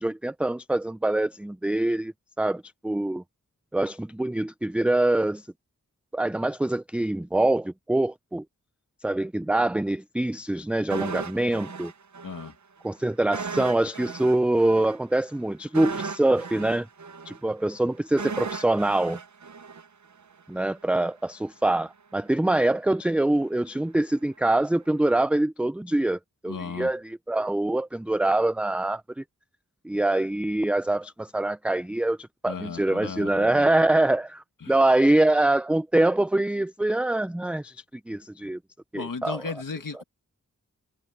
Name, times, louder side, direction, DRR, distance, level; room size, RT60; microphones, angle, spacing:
voice 1, 0.0-3.2 3.7-5.5 6.1-8.4 9.0-11.9 12.8-16.9 17.3-19.2 20.5-29.2 29.8-38.6 38.9-39.4, right 2 dB, 5° right, 0.3 m, -24 dB
sound 1, 10.9-12.5 12.8-12.9 13.3-20.4 20.7-20.8, right 5 dB, 60° right, 0.9 m, -36 dB
voice 2, 12.2-12.6 26.5-26.9 32.5-33.8 34.6-34.8 38.9-40.0, left 5 dB, 75° left, 2.1 m, -35 dB
cardioid pair, 45°, 33 cm